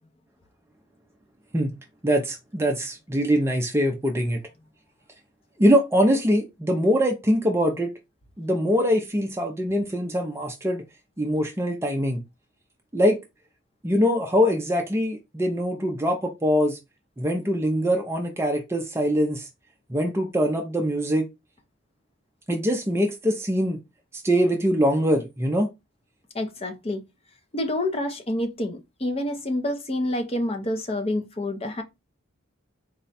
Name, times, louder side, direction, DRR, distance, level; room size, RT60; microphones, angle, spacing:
voice 1, 2.0-4.4 5.6-7.9 8.4-10.8 11.2-12.2 12.9-13.2 13.8-16.8 17.2-19.5 19.9-21.3 22.5-23.8 24.1-25.7, equal, 15° right, 0.5 m, -23 dB
voice 2, 26.3-27.0 27.5-31.8, left 1 dB, 30° left, 0.6 m, -28 dB
4.1 x 2.2 x 4.0 m
head